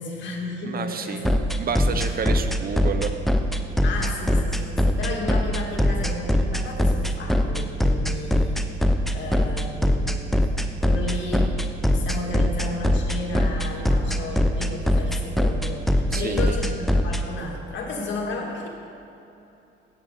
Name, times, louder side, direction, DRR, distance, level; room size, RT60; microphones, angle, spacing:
voice 1, 0.0-2.2 3.8-10.5 10.8-18.7, left 3 dB, 70° left, 0 dB, 2.1 m, -33 dB
voice 2, 0.6-3.1 16.1-16.6, right 6 dB, 50° right, 9 dB, 0.7 m, -30 dB
sound 1, 1.2-17.2, left 1 dB, ahead, 0.7 m, -21 dB
16.0 x 7.6 x 3.9 m, 2.9 s
cardioid pair, 90°, 20 cm